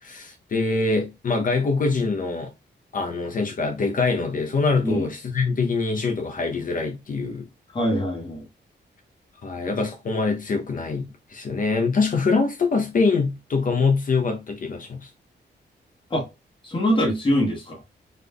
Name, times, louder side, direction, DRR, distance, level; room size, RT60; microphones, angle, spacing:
voice 1, 0.0-2.5 2.9-7.5 9.4-15.1, left 4 dB, 50° left, 0.7 m, -24 dB
voice 2, 7.7-8.4 16.1-16.3 16.6-17.8, equal, 30° left, 1.3 m, -23 dB
3.9 x 3.5 x 2.2 m
wide cardioid pair, 125°, 18 cm